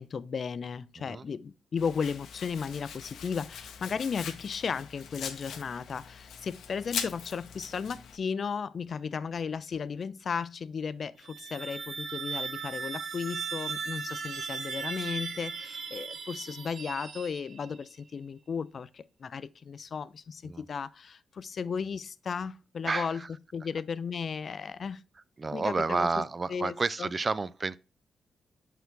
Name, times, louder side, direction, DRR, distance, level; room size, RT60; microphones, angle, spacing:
voice 1, 0.0-23.2 23.5-25.0 25.5-26.2 26.5-27.1, left 6 dB, 50° left, 0.4 m, -35 dB
Domestic sounds home sounds, 1.8-8.2, left 7 dB, 80° left, 0.9 m, -41 dB
sound 1, 11.1-17.8, right 5 dB, 60° right, 0.8 m, -37 dB
voice 2, 22.8-23.3 25.4-27.8, right 4 dB, 30° right, 0.3 m, -30 dB
5.8 x 5.7 x 3.6 m
cardioid pair, 100°, 0 cm